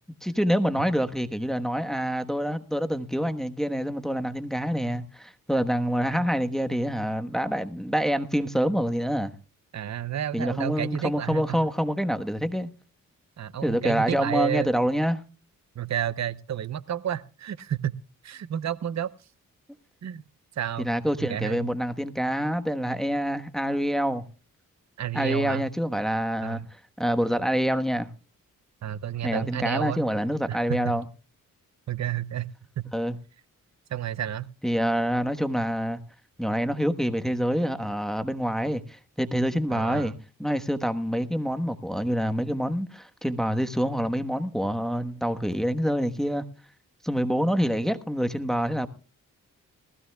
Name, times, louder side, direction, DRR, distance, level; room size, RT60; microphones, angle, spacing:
voice 1, 0.2-9.3 10.3-12.7 13.6-15.2 20.8-24.2 25.1-28.1 29.2-31.1 32.9-33.2 34.6-36.0 36.4-40.1 40.4-46.4 47.0-48.9, equal, ahead, 1.2 m, -26 dB
voice 2, 9.7-11.6 13.4-14.7 15.8-18.0 18.2-19.1 20.0-20.2 20.6-20.9 21.2-21.7 25.0-25.7 26.4-26.7 28.8-30.0 30.5-31.0 31.9-32.5 32.8-32.9 33.9-34.5 39.7-40.1, right 10 dB, 50° right, 0.7 m, -30 dB
19.5 x 15.5 x 2.3 m
cardioid pair, 65°, 34 cm